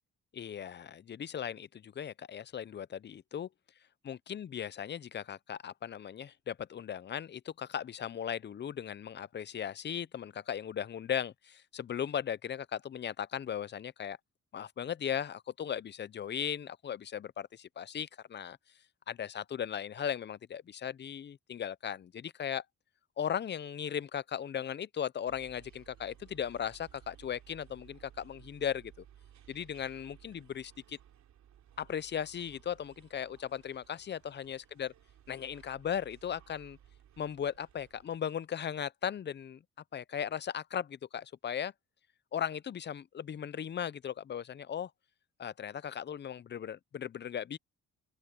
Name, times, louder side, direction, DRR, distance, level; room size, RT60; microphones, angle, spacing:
voice 1, 0.3-3.5 4.0-14.2 14.5-18.6 19.1-22.6 23.2-28.9 29.5-31.0 31.8-34.9 35.3-36.8 37.2-39.6 39.9-41.7 42.3-44.9 45.4-47.6, left 9 dB, 35° left, 0.6 m, -37 dB
sound 1, 25.3-38.2, right 10 dB, 70° right, 3.0 m, -59 dB
open air
cardioid pair, 90°, 30 cm